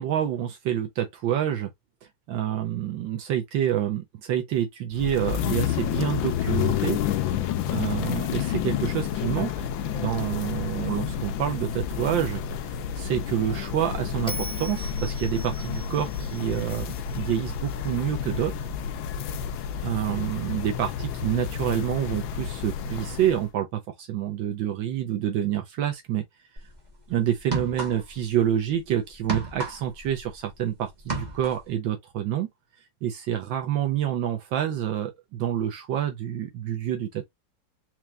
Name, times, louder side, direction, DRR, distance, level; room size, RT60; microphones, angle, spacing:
voice 1, 0.0-1.7 2.3-7.0 7.7-9.5 9.9-12.4 13.0-16.9 17.1-18.5 19.8-26.2 27.1-32.5 33.0-37.3, right 10 dB, 80° right, 1.5 m, -27 dB
sound 1, 4.9-23.5, left 9 dB, 80° left, 1.4 m, -30 dB
Bell, 14.3-17.5, left 1 dB, 5° left, 0.5 m, -40 dB
sound 2, 26.6-26.8 27.4-28.3 28.5-30.7 30.9-31.7, right 3 dB, 25° right, 1.1 m, -32 dB
4.6 x 3.0 x 2.4 m
omnidirectional pair, 2.1 m